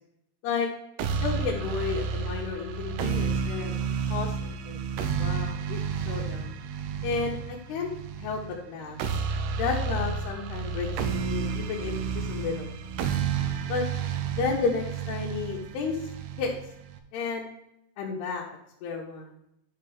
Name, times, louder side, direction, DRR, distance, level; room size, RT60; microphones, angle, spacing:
sound 1, 1.0-17.0, right 6 dB, 85° right, 2.6 m, -31 dB
voice 1, 1.2-4.8 5.2-5.8 6.1-6.5 7.0-7.9 8.2-9.0 9.5-12.8 13.7-13.8 14.3-16.0 16.4-16.5 17.1-17.5 18.0-18.4 18.8-19.3, left 5 dB, 75° left, -5 dB, 3.0 m, -32 dB
10.5 x 5.8 x 3.4 m, 0.80 s
omnidirectional pair, 4.9 m